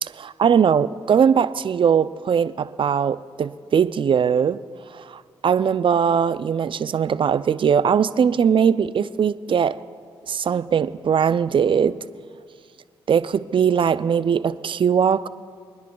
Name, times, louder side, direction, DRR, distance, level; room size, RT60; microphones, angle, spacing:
voice 1, 0.0-4.6 4.9-9.8 10.3-12.0 13.1-15.3, right 7 dB, 50° right, 15 dB, 0.5 m, -20 dB
29.0 x 10.5 x 2.3 m, 2.1 s
supercardioid pair, 45°, 11 cm